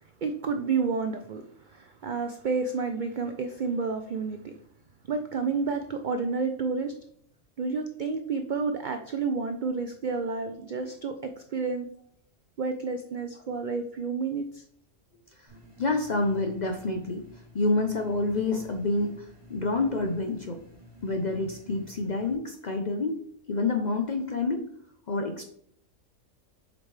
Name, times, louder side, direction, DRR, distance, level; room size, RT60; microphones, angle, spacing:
voice 1, 0.2-4.5 5.1-6.9 7.6-11.9 12.6-14.6, right 4 dB, 65° right, 6 dB, 0.4 m, -30 dB
sound 1, 15.5-22.3, left 1 dB, 20° right, 2.3 m, -51 dB
voice 2, 15.8-17.2 17.5-20.6 21.0-23.2 23.5-24.7 25.1-25.4, left 3 dB, 50° left, 4 dB, 0.5 m, -28 dB
7.8 x 5.1 x 3.2 m, 0.65 s
omnidirectional pair, 1.4 m